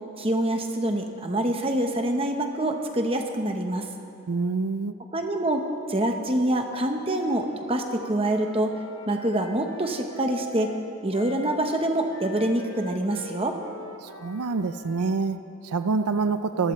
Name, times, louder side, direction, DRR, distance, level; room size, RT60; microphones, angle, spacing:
voice 1, 0.2-3.8 5.1-8.7 9.1-10.7 11.0-13.6, right 1 dB, 25° right, 4 dB, 1.1 m, -26 dB
voice 2, 4.3-4.9 14.0-16.7, right 4 dB, 90° right, 10 dB, 0.5 m, -26 dB
Wind instrument woodwind instrument, 7.2-15.2, left 3 dB, 65° left, 1.3 m, -44 dB
24.5 x 15.0 x 3.3 m, 2.6 s
head